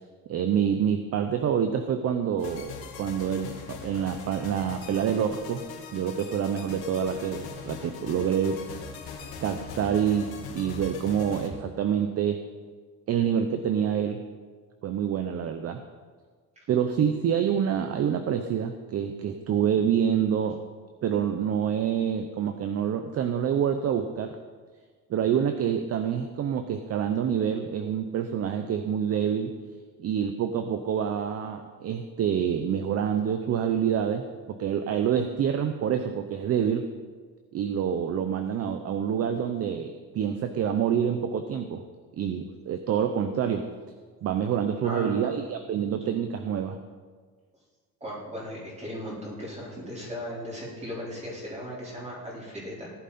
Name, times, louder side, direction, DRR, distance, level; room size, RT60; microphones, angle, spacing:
voice 1, 0.3-5.6 5.9-8.6 9.4-12.4 13.1-14.2 14.8-15.8 16.7-20.6 21.0-24.4 25.1-29.5 30.0-36.9 37.5-41.8 42.2-43.7 44.2-46.8, right 8 dB, 40° right, 8 dB, 0.8 m, -27 dB
sound 1, 2.4-11.5, left 5 dB, 85° left, 2.7 m, -41 dB
voice 2, 44.8-45.3 48.0-52.9, equal, 20° right, -5 dB, 4.3 m, -37 dB
17.5 x 11.0 x 4.3 m, 1.5 s
cardioid pair, 160°, 36 cm